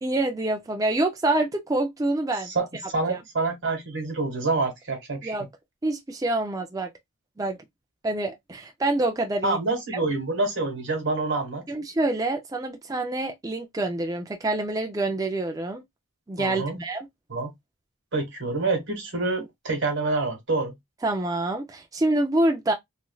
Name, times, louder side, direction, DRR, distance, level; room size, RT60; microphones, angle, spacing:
voice 1, 0.0-2.5 3.1-3.2 5.2-5.5 5.8-6.9 7.4-7.6 8.0-9.6 9.9-10.0 11.7-15.8 16.3-17.1 21.0-22.7, right 2 dB, 15° right, 0.3 m, -26 dB
voice 2, 2.5-5.3 9.4-11.6 16.4-16.8 17.3-17.5 18.1-20.7, right 3 dB, 55° right, 1.3 m, -27 dB
3.1 x 2.5 x 2.2 m
head